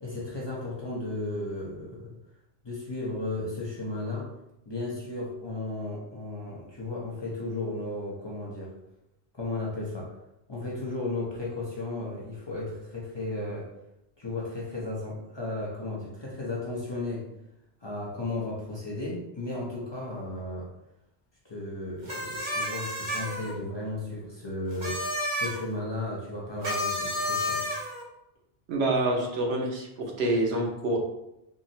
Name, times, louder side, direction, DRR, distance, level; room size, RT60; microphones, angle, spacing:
voice 1, 0.0-2.2 2.6-4.3 4.6-8.7 9.3-10.1 10.5-13.7 14.2-17.3 17.8-20.7 21.4-27.6, left 2 dB, 30° left, -5 dB, 0.5 m, -34 dB
sound 1, 22.1-23.5 24.7-25.6 26.6-28.0, left 1 dB, 50° right, 0.8 m, -31 dB
voice 2, 28.7-31.0, right 2 dB, 85° right, -1 dB, 1.0 m, -27 dB
3.6 x 2.0 x 2.7 m, 0.85 s
omnidirectional pair, 1.1 m